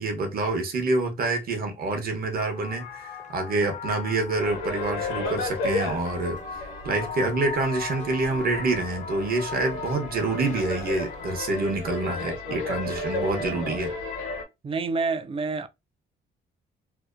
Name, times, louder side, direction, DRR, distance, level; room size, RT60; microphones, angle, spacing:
voice 1, 0.0-6.4 6.8-13.9, right 2 dB, 50° right, 0.9 m, -27 dB
sound 1, 2.4-11.5, left 6 dB, 40° left, 0.5 m, -39 dB
sound 2, 4.4-14.4, left 2 dB, 85° left, 1.0 m, -33 dB
voice 2, 14.6-15.7, right 4 dB, 30° right, 0.4 m, -27 dB
2.7 x 2.1 x 2.4 m
cardioid pair, 90°, 20 cm